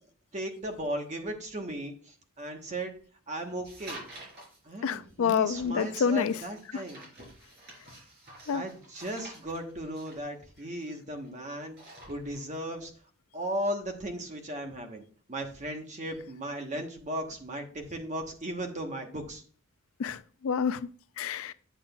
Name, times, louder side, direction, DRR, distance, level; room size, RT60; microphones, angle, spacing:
voice 1, 0.3-2.9 3.3-4.0 4.6-7.1 8.5-11.8 12.1-12.9 13.3-15.0 15.3-19.4, right 1 dB, 35° right, 1.2 m, -36 dB
sound 1, 3.6-4.6 5.5-11.3 11.6-12.6, right 1 dB, 50° right, 3.8 m, -49 dB
voice 2, 4.8-6.4 8.5-8.6 20.0-20.9 21.2-21.5, left 6 dB, 65° left, 0.4 m, -28 dB
8.9 x 7.3 x 2.4 m
head